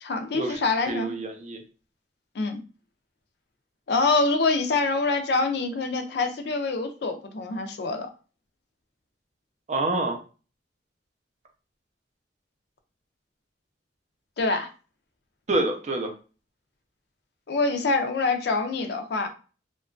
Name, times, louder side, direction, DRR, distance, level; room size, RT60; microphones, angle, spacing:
voice 1, 0.0-1.1 2.4-2.6 3.9-8.1 14.4-14.7 17.5-19.3, left 3 dB, 60° left, 6 dB, 0.4 m, -25 dB
voice 2, 0.9-1.6 9.7-10.2 15.5-16.1, right 2 dB, 40° right, 4 dB, 0.4 m, -27 dB
2.8 x 2.2 x 2.4 m, 0.35 s
head